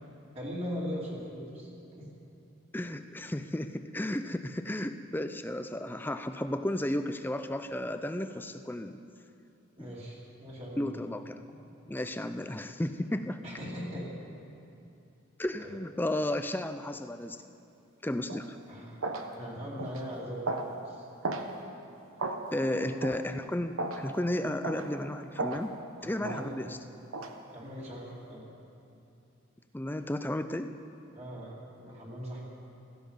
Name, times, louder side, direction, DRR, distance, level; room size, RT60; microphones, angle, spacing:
voice 1, 0.3-2.1 9.8-10.9 13.4-14.1 15.6-15.7 18.7-18.9 19.3-20.6 20.8-21.1 22.7-22.9 26.0-26.5 27.5-28.4 31.1-32.4, equal, 30° right, -6 dB, 2.8 m, -40 dB
voice 2, 2.7-9.0 9.8-10.0 10.8-11.4 11.9-13.4 15.4-17.4 18.0-18.6 22.5-26.8 29.7-30.8, left 1 dB, 10° left, 9 dB, 0.4 m, -33 dB
sound 1, 18.3-18.5 19.0-19.3 19.8-20.0 20.5-20.7 21.2-21.5 22.2-22.4 23.0-23.2 23.8-24.0 24.6-24.9 25.4-25.6 26.2-26.4 27.1-27.3, right 3 dB, 80° right, 1.1 m, -34 dB
16.0 x 14.5 x 5.5 m, 2.7 s
head